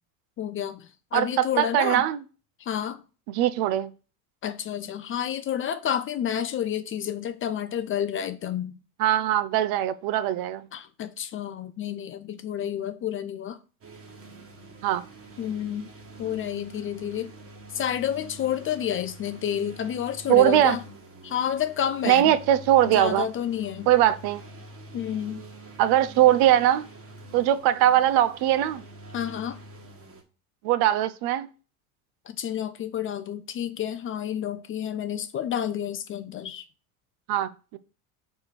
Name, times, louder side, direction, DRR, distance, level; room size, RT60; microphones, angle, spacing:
voice 1, 0.4-2.0 2.6-3.0 4.4-8.8 10.7-13.6 15.4-15.9 16.2-17.3 17.7-20.8 21.2-22.4 22.9-23.9 24.9-25.4 29.1-29.6 32.3-36.6, left 9 dB, 30° left, 0.4 m, -30 dB
voice 2, 1.1-2.2 3.4-3.9 9.0-10.7 14.8-15.0 20.3-20.8 22.0-23.2 23.9-24.4 25.8-26.9 27.3-28.8 30.6-31.5 37.3-37.8, right 12 dB, 55° right, 0.6 m, -21 dB
sound 1, 13.8-30.2, right 2 dB, 30° right, 1.4 m, -46 dB
4.8 x 4.4 x 4.6 m
hypercardioid pair, 90°, 44 cm